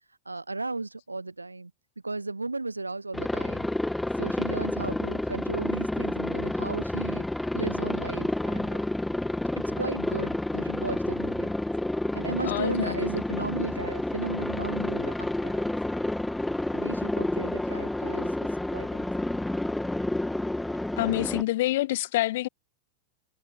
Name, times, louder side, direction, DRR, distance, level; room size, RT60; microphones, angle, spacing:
voice 1, 0.3-1.7 2.0-3.7 4.2-7.2 7.5-8.8 9.8-11.5 12.1-15.6 16.7-18.3 18.7-19.1, right 3 dB, 80° right, 7.4 m, -35 dB
Aircraft, 3.1-21.4, left 1 dB, 5° left, 2.2 m, -30 dB
voice 2, 12.4-13.0 21.0-22.5, left 16 dB, 55° left, 4.3 m, -27 dB
figure-of-eight pair, 90°, 0 cm